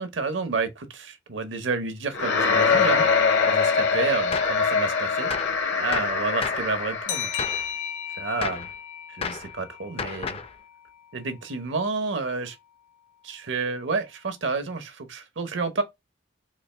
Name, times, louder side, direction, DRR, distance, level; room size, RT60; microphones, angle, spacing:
voice 1, 0.0-3.0 3.4-5.3 5.8-7.6 8.2-8.7 9.1-10.4 11.1-12.6 13.2-15.8, right 4 dB, 70° right, 0.8 m, -30 dB
sound 1, 2.1-7.5, left 5 dB, 65° left, 0.9 m, -23 dB
Gunshot gunfire, 4.3-4.6 5.3-5.6 5.9-6.7 7.4-7.7 8.4-8.7 9.2-9.5 10.0-10.5, left 5 dB, 30° left, 0.4 m, -32 dB
sound 2, 7.1-10.4, left 9 dB, 90° left, 0.6 m, -34 dB
4.0 x 2.4 x 3.2 m
head